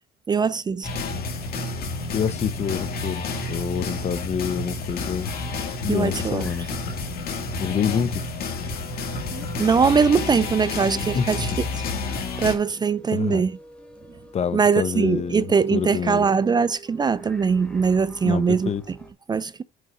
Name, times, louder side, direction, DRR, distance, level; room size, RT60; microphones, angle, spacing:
voice 1, 0.3-0.9 5.9-6.5 9.3-11.5 12.4-13.6 14.5-19.0 19.3-19.6, right 5 dB, 25° right, 0.4 m, -21 dB
sound 1, 0.8-12.6, left 3 dB, 65° left, 2.2 m, -30 dB
sound 2, 1.5-19.1, left 1 dB, 5° left, 2.1 m, -43 dB
voice 2, 2.1-5.3 5.8-6.7 7.6-8.3 11.1-11.3 13.1-13.4 14.3-15.4 15.7-16.3 18.2-18.8, left 8 dB, 40° left, 0.7 m, -27 dB
6.3 x 5.2 x 5.5 m
cardioid pair, 110°, 17 cm